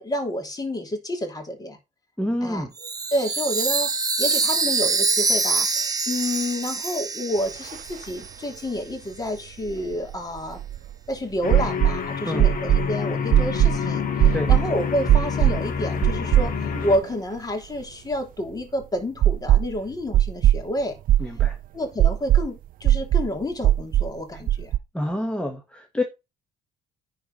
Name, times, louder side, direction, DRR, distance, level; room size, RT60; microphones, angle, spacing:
voice 1, 0.0-1.8 2.4-3.9 4.2-10.6 11.1-21.0 21.7-24.7, left 1 dB, 20° left, 3.3 m, -29 dB
voice 2, 2.2-2.7 12.2-12.5 14.3-14.5 21.2-21.6 24.9-26.0, left 1 dB, 5° left, 1.4 m, -27 dB
Chime, 2.8-8.3, right 4 dB, 20° right, 1.4 m, -25 dB
sound 1, 7.7-7.8 8.0-8.1 9.7-10.9 11.5-12.0 12.4-12.9 13.3-13.8 14.2-14.6 15.1-15.6 16.0-16.8 17.1-17.2 19.2-19.8 20.1-20.6 21.1-21.6 22.0-22.5 22.9-23.3 23.6-24.1 24.5-24.8, right 12 dB, 55° right, 0.5 m, -18 dB
sound 2, 11.4-17.0, left 6 dB, 55° left, 2.7 m, -28 dB
10.0 x 4.7 x 5.6 m
cardioid pair, 110°, 17 cm